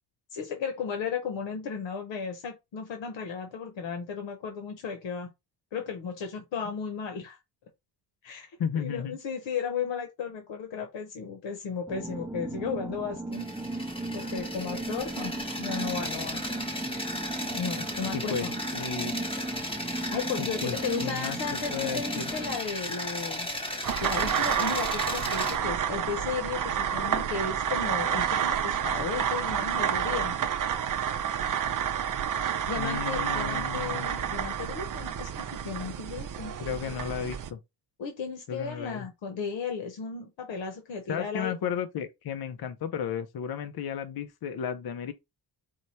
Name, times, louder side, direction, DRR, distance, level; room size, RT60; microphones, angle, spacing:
voice 1, 0.3-5.3 5.7-7.4 8.2-13.8 14.1-16.6 17.5-18.6 20.1-23.5 24.0-30.4 32.7-36.6 38.0-41.5, left 6 dB, 90° left, 1.0 m, -35 dB
voice 2, 8.6-9.2 18.1-18.5 18.7-19.1 20.6-20.8 21.0-21.4 21.7-22.3 32.8-34.1 36.6-37.6 38.5-39.1 41.1-45.1, left 8 dB, 60° left, 0.6 m, -33 dB
sound 1, 11.9-22.6, right 2 dB, 5° right, 0.4 m, -36 dB
sound 2, 13.3-25.6, left 1 dB, 10° left, 0.9 m, -35 dB
sound 3, 23.8-37.5, right 9 dB, 45° right, 0.6 m, -29 dB
4.7 x 2.2 x 4.1 m
wide cardioid pair, 125°, 44 cm